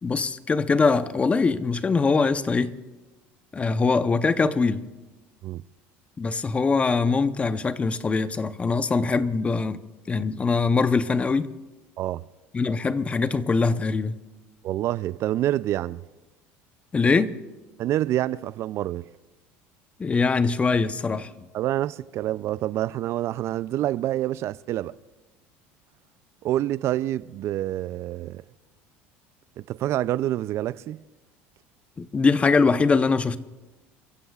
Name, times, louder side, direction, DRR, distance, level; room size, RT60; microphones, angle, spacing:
voice 1, 0.0-2.7 3.5-4.9 6.2-11.5 12.5-14.2 16.9-17.4 20.0-21.3 32.0-33.4, left 4 dB, 20° left, 0.7 m, -22 dB
voice 2, 14.6-16.0 17.8-19.1 21.5-25.0 26.4-28.4 29.6-31.0, right 13 dB, 50° right, 0.4 m, -27 dB
29.0 x 15.0 x 2.4 m
supercardioid pair, 105°, 6 cm